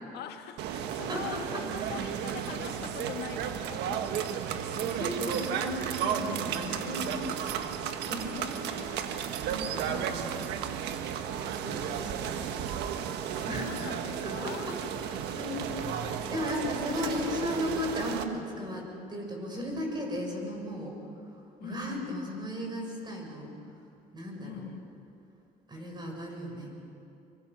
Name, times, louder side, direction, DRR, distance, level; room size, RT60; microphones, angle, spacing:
voice 1, 0.1-4.8 8.1-9.3 13.4-14.8 15.2-15.4 16.2-17.2 21.6-22.3 24.4-24.9, left 9 dB, 75° left, 6 dB, 1.5 m, -44 dB
sound 1, 0.6-18.2, right 8 dB, 85° right, 1.4 m, -33 dB
voice 2, 4.8-8.3 9.5-10.3 11.0-12.3 13.4-13.8 14.2-14.3 15.1-18.8 19.1-21.0 21.6-23.5 24.1-24.6 25.7-26.7, left 1 dB, 25° right, 1 dB, 6.6 m, -36 dB
24.5 x 24.0 x 6.3 m, 2.7 s
cardioid pair, 110°, 17 cm